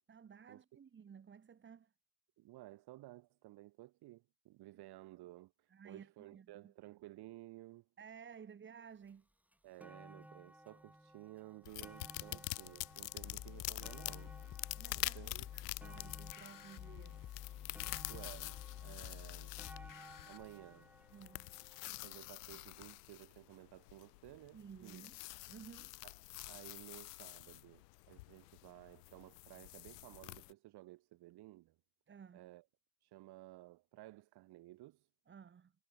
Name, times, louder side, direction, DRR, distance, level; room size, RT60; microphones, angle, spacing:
voice 1, 0.1-1.9 4.7-4.8 5.7-6.7 8.0-9.3 12.2-12.4 13.2-13.4 14.8-17.3 21.1-21.6 24.5-25.2 25.5-26.0 32.1-32.5 35.3-35.7, right 7 dB, 25° right, 1.4 m, -56 dB
voice 2, 2.4-7.9 9.6-14.3 14.9-15.5 18.1-19.5 20.3-20.9 22.0-25.0 26.0-26.2 26.4-31.8 32.3-32.6 33.0-35.1, right 17 dB, 55° right, 1.7 m, -55 dB
sound 1, 9.1-9.2 9.5-22.7 23.5-23.6, right 1 dB, 5° right, 6.8 m, -59 dB
sound 2, 11.6-30.5, left 23 dB, 90° left, 1.6 m, -47 dB
sound 3, 13.2-20.4, left 11 dB, 45° left, 3.0 m, -50 dB
supercardioid pair, 100°, 46 cm